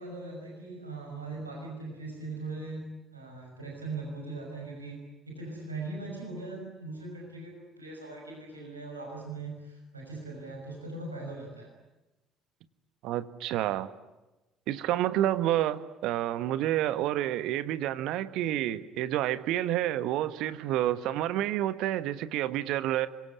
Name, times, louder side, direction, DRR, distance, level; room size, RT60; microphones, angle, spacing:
voice 1, 0.0-5.0 5.3-11.7, right 3 dB, 90° right, 0 dB, 5.9 m, -40 dB
voice 2, 13.0-13.9 14.7-23.1, right 13 dB, 60° right, 13 dB, 1.4 m, -29 dB
26.0 x 23.0 x 9.8 m, 1.0 s
figure-of-eight pair, 50°, 0 cm